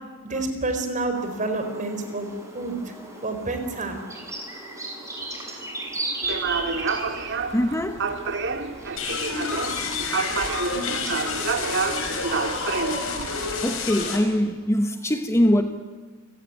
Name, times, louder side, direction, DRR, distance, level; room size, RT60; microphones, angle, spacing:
voice 1, 0.2-2.8 3.2-4.0, right 2 dB, 35° right, 4.5 m, -28 dB
sound 1, 1.1-12.6, right 2 dB, 15° right, 7.0 m, -37 dB
sound 2, 6.2-13.8, right 4 dB, 60° right, 2.1 m, -29 dB
voice 2, 7.5-8.1 13.5-15.6, equal, 15° left, 1.1 m, -22 dB
sound 3, 9.0-14.2, left 4 dB, 75° left, 5.3 m, -29 dB
29.0 x 18.0 x 9.7 m
head